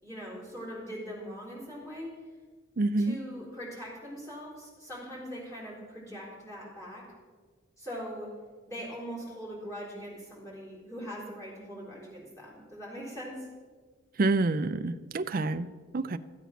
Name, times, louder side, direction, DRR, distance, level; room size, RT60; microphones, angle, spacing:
voice 1, 0.0-2.1 3.0-7.1 7.8-8.3 8.7-13.5, equal, 15° left, -5 dB, 3.8 m, -41 dB
voice 2, 2.8-3.2 14.2-15.7 15.9-16.2, right 2 dB, 45° right, 10 dB, 0.5 m, -27 dB
13.5 x 8.3 x 5.9 m, 1.5 s
head